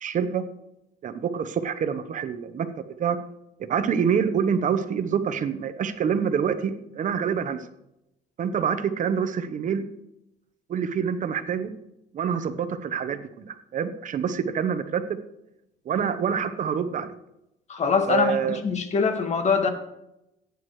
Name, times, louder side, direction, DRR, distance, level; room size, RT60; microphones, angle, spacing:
voice 1, 0.0-0.4 1.0-2.7 3.0-3.2 3.6-7.7 8.4-9.8 10.7-11.7 12.1-15.2 15.9-17.1 18.1-18.6, right 7 dB, 50° right, 10 dB, 1.0 m, -26 dB
voice 2, 17.7-19.7, left 5 dB, 45° left, 6 dB, 1.8 m, -23 dB
15.5 x 9.5 x 3.2 m, 0.84 s
cardioid pair, 110°, 17 cm